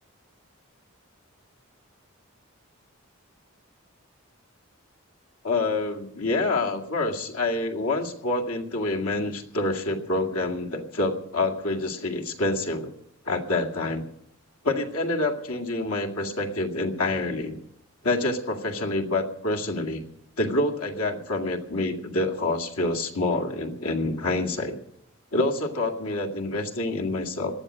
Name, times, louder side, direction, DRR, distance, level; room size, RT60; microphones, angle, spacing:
voice 1, 5.4-12.9 13.3-14.0 14.6-17.6 18.0-20.0 20.4-24.8 25.3-27.5, left 2 dB, 90° left, 2 dB, 2.2 m, -27 dB
18.5 x 12.0 x 6.3 m, 0.75 s
head